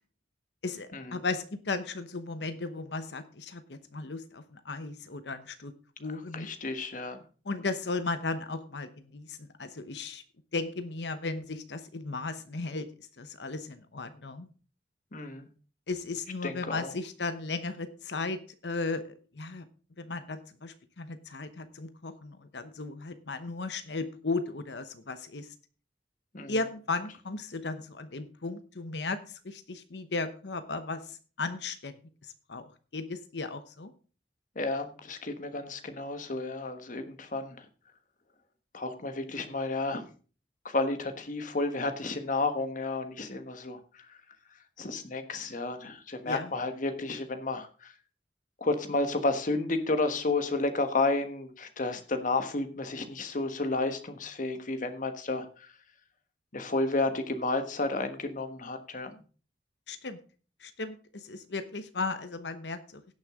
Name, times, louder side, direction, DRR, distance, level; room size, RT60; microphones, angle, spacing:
voice 1, 0.6-5.7 6.0-6.5 7.4-10.2 10.5-14.5 15.9-19.6 20.0-25.5 26.5-32.0 32.2-33.9 46.3-46.5 59.9-60.2 60.6-63.0, left 3 dB, 75° left, 10 dB, 1.0 m, -36 dB
voice 2, 6.3-7.2 15.1-15.5 16.4-16.9 26.3-26.5 34.5-37.7 38.7-40.1 40.6-44.2 44.8-47.9 48.6-55.7 56.5-59.1, left 2 dB, 50° left, 8 dB, 1.3 m, -31 dB
17.0 x 6.5 x 3.7 m, 0.37 s
head